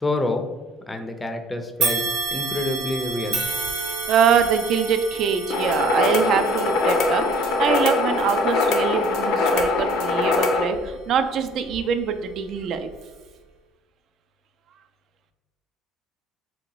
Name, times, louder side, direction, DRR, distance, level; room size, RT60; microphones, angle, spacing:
voice 1, 0.0-0.5 0.9-2.0 2.3-3.4, left 2 dB, 15° left, 6 dB, 0.4 m, -27 dB
sound 1, 1.8-11.1 11.6-11.8 12.8-12.9, right 4 dB, 80° right, 0.8 m, -31 dB
voice 2, 4.1-12.9, right 7 dB, 60° right, 9 dB, 0.3 m, -23 dB
sound 2, 5.5-10.7, left 3 dB, 75° left, 0.5 m, -22 dB
2.8 x 2.2 x 3.9 m, 1.2 s
supercardioid pair, 85°, 0 cm